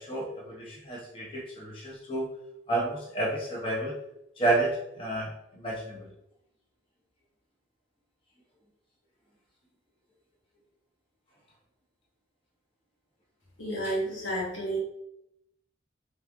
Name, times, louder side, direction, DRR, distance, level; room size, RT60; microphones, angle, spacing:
voice 1, 0.0-2.3 2.7-3.9 4.4-6.0, right 2 dB, 25° left, -4 dB, 0.8 m, -30 dB
voice 2, 13.6-14.8, right 1 dB, 85° left, -5 dB, 1.5 m, -31 dB
3.4 x 3.1 x 3.6 m, 0.81 s
head